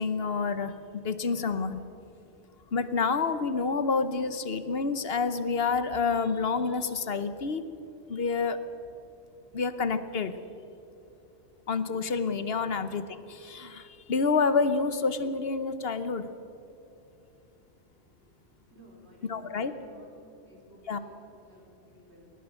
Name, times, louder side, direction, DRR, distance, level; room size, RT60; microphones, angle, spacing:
voice 1, 0.0-1.8 2.7-7.6 8.1-8.6 9.5-10.4 11.7-16.3 19.3-19.7 20.9-21.0, left 4 dB, 60° left, 12 dB, 1.1 m, -28 dB
voice 2, 18.7-22.3, equal, 70° right, -1 dB, 4.4 m, -56 dB
21.5 x 19.5 x 6.4 m, 2.8 s
omnidirectional pair, 1.1 m